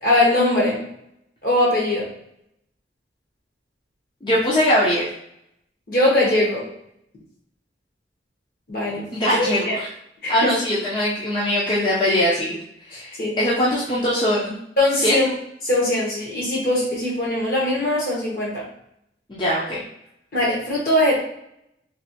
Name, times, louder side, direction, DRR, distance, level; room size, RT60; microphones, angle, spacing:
voice 1, 0.0-0.8 1.4-2.0 5.9-6.6 8.7-9.1 9.3-9.8 10.2-10.5 12.9-13.4 14.8-15.3 15.6-18.6 20.3-21.2, left 1 dB, 55° left, -4 dB, 1.3 m, -21 dB
voice 2, 4.2-5.0 9.1-9.9 10.3-12.5 12.9-14.6 15.0-15.2 19.3-19.8, left 1 dB, 25° left, -7 dB, 0.6 m, -21 dB
3.2 x 3.0 x 2.8 m, 0.75 s
head